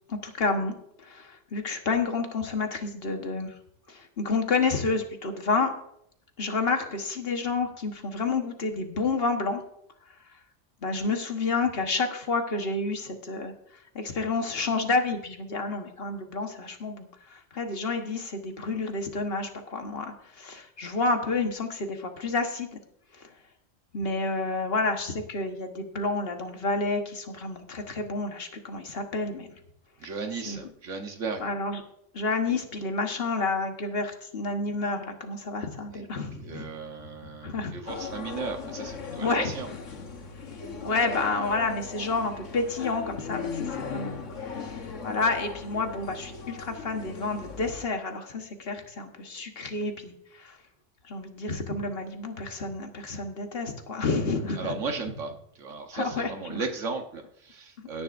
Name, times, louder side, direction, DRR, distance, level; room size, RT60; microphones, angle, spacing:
voice 1, 0.1-3.5 3.9-5.7 6.4-9.6 10.8-22.8 23.1-23.3 23.9-29.5 30.4-30.6 31.4-31.8 32.1-36.7 37.4-37.7 39.2-39.5 40.8-50.6 51.1-54.7 55.9-56.6, left 3 dB, 55° left, 5 dB, 1.5 m, -30 dB
voice 2, 30.0-31.5 35.9-36.0 36.4-39.7 54.6-55.3 55.6-58.0, right 4 dB, 80° right, 5 dB, 1.5 m, -35 dB
sound 1, 37.9-47.8, left 5 dB, 80° left, 1.6 m, -38 dB
16.0 x 10.5 x 2.6 m, 0.73 s
omnidirectional pair, 1.3 m